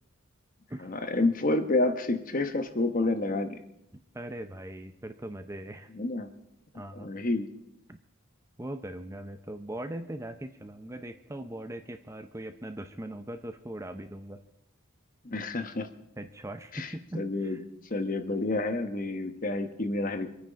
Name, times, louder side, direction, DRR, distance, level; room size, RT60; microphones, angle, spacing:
voice 1, 0.8-3.6 5.9-6.3 6.9-7.5 15.2-15.9 16.7-17.6 17.9-20.3, left 2 dB, 40° left, 7 dB, 1.1 m, -29 dB
voice 2, 3.9-5.9 6.7-7.1 7.9-8.0 8.6-14.4 16.2-17.6, right 1 dB, 15° right, 8 dB, 0.5 m, -40 dB
24.5 x 9.3 x 5.1 m, 0.82 s
head